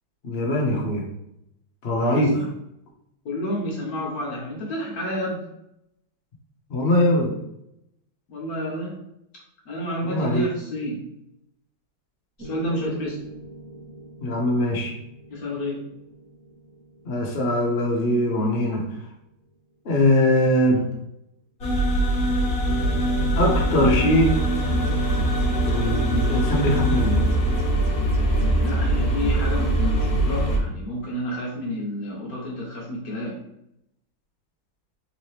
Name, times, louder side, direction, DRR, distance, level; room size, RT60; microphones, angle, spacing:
voice 1, 0.2-1.0 1.8-2.4 6.7-7.3 10.0-10.5 14.2-14.9 17.0-18.8 19.8-20.9 23.3-24.4 25.6-27.3, left 1 dB, 75° left, -1 dB, 0.5 m, -21 dB
voice 2, 2.1-2.5 3.2-5.4 8.3-9.0 9.7-11.0 12.4-13.2 15.3-15.8 28.4-33.4, equal, 60° left, -4 dB, 1.0 m, -30 dB
Piano, 12.4-20.5, right 2 dB, 15° right, 0.8 m, -45 dB
sound 1, 21.6-30.6, right 1 dB, 35° left, 1.1 m, -22 dB
sound 2, 24.3-28.7, right 2 dB, 65° right, 1.8 m, -34 dB
3.7 x 2.9 x 3.1 m, 0.81 s
omnidirectional pair, 2.2 m